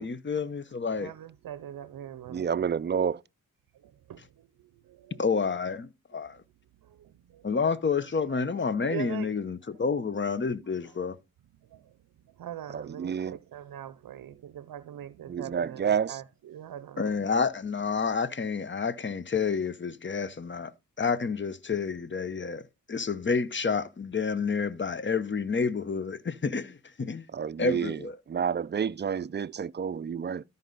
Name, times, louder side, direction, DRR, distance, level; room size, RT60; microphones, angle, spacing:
voice 1, 0.0-1.1 5.2-6.4 7.4-11.2 17.0-20.7 21.0-22.6 22.9-27.2 27.6-28.2, left 5 dB, 35° left, 0.9 m, -29 dB
voice 2, 1.0-2.5 3.8-5.2 6.1-6.3 6.8-7.6 8.3-8.4 8.8-9.3 11.7-11.9 12.4-17.2, right 11 dB, 85° right, 0.6 m, -43 dB
voice 3, 2.3-3.2 12.7-13.4 15.3-16.2 27.3-28.0 28.3-30.4, right 7 dB, 30° right, 0.4 m, -29 dB
13.0 x 5.4 x 4.0 m
cardioid pair, 50°, 34 cm